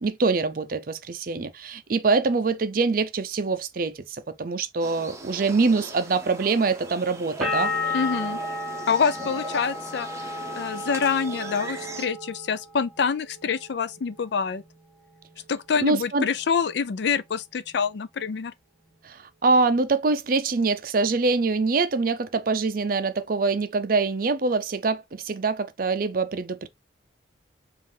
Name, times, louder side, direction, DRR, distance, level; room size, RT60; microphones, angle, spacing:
voice 1, 0.0-8.0 15.8-16.3 19.0-26.7, right 3 dB, 50° right, 0.5 m, -24 dB
sound 1, 4.8-12.1, right 2 dB, 15° right, 0.7 m, -40 dB
sound 2, 7.4-13.0 13.3-14.1, left 3 dB, ahead, 1.3 m, -32 dB
voice 2, 7.9-8.4 8.9-10.3 10.6-14.6 15.5-18.5, left 6 dB, 65° left, 0.4 m, -26 dB
5.3 x 2.5 x 3.2 m
head